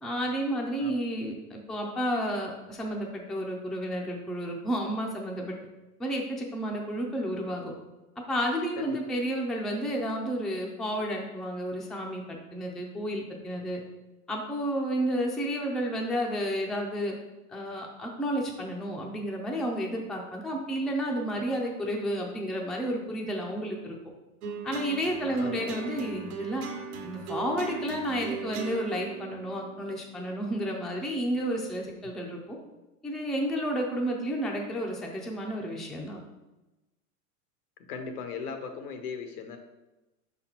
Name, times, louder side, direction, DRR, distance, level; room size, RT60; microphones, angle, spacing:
voice 1, 0.0-5.6 6.0-7.7 8.3-13.8 14.3-17.1 17.5-24.0 24.6-26.7 27.0-32.6 33.0-36.2, equal, ahead, 0 dB, 0.4 m, -31 dB
sound 1, 24.4-30.9, right 5 dB, 80° right, 1.2 m, -39 dB
voice 2, 25.4-25.9 37.9-39.6, left 5 dB, 85° left, 6 dB, 1.1 m, -38 dB
5.3 x 4.1 x 4.4 m, 1.0 s
supercardioid pair, 125°, 44 cm